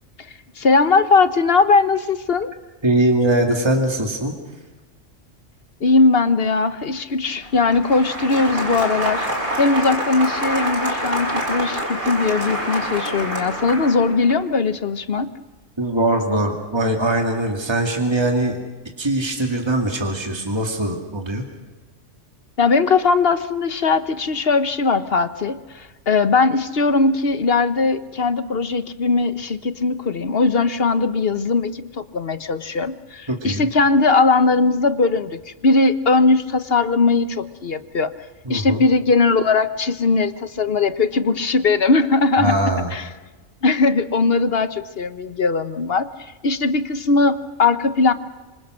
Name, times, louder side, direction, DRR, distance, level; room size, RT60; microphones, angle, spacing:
voice 1, 0.6-2.5 5.8-9.3 9.6-15.3 22.6-38.1 38.5-42.6 42.9-43.0 43.6-48.1, left 3 dB, 55° left, 12 dB, 1.2 m, -19 dB
voice 2, 2.8-4.3 15.8-18.6 19.0-21.4 33.3-33.7 38.4-38.8 42.4-42.9, right 1 dB, 20° right, 2 dB, 2.5 m, -21 dB
Applause, 7.4-14.4, right 1 dB, 45° right, 6.3 m, -26 dB
26.5 x 26.0 x 6.4 m, 1.2 s
omnidirectional pair, 1.3 m